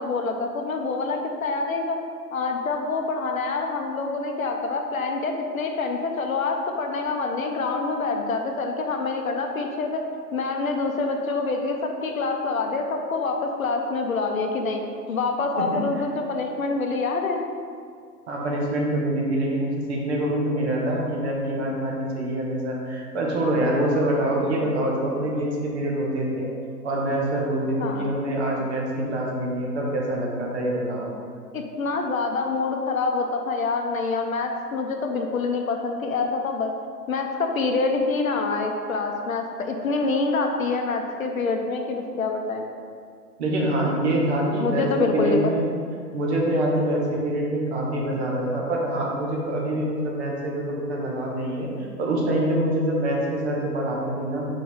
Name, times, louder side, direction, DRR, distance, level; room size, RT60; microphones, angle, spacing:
voice 1, 0.0-2.0 2.3-10.0 10.3-14.8 15.1-17.4 27.8-28.1 31.5-36.7 37.1-42.7 44.6-45.5, left 3 dB, 55° left, 3 dB, 0.8 m, -26 dB
voice 2, 18.3-26.5 26.8-31.1 43.4-45.7 46.1-51.7 52.0-54.5, right 1 dB, 40° right, -2 dB, 1.3 m, -25 dB
5.3 x 5.0 x 3.6 m, 2.2 s
figure-of-eight pair, 120°, 48 cm